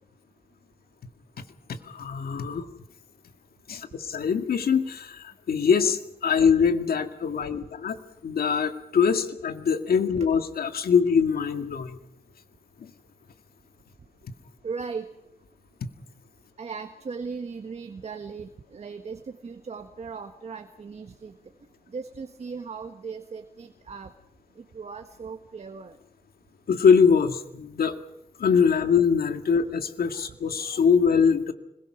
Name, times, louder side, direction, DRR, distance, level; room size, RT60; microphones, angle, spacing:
voice 1, 1.7-2.7 3.7-8.0 8.2-12.0 12.8-12.9 26.7-28.0 28.4-31.5, left 6 dB, 75° left, 7 dB, 2.1 m, -23 dB
voice 2, 14.6-15.1 16.6-21.3 21.9-24.1 24.6-26.0, right 5 dB, 45° right, 7 dB, 1.5 m, -37 dB
25.5 x 22.0 x 6.2 m, 0.81 s
wide cardioid pair, 140°, 16 cm